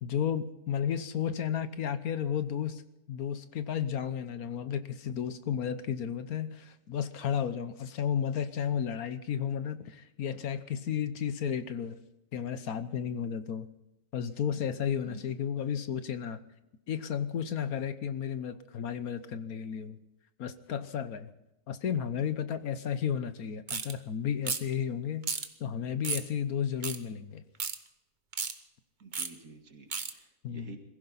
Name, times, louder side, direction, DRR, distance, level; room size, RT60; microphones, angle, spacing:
voice 1, 0.0-2.8 3.1-12.0 12.3-13.7 14.1-16.4 16.9-20.0 20.4-21.3 21.7-25.3 25.6-27.4 30.4-30.7, left 8 dB, 70° left, 12 dB, 1.4 m, -33 dB
voice 2, 15.0-15.4 29.0-30.8, right 3 dB, 60° right, 4 dB, 2.5 m, -50 dB
sound 1, 23.7-23.9 24.4-24.7 25.2-25.5 26.0-26.3 26.8-27.0 27.6-27.8 28.3-28.5 29.1-29.3 29.9-30.1, right 5 dB, 35° right, 1.0 m, -33 dB
22.0 x 15.5 x 4.1 m, 0.90 s
omnidirectional pair, 1.6 m